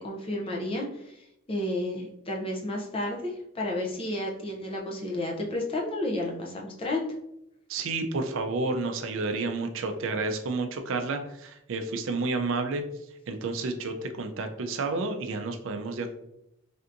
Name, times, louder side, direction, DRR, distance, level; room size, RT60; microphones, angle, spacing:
voice 1, 0.0-7.1, left 1 dB, 25° left, -1 dB, 0.5 m, -32 dB
voice 2, 7.7-12.8 13.3-16.1, right 3 dB, 70° right, 6 dB, 0.4 m, -30 dB
3.3 x 2.7 x 2.5 m, 0.82 s
head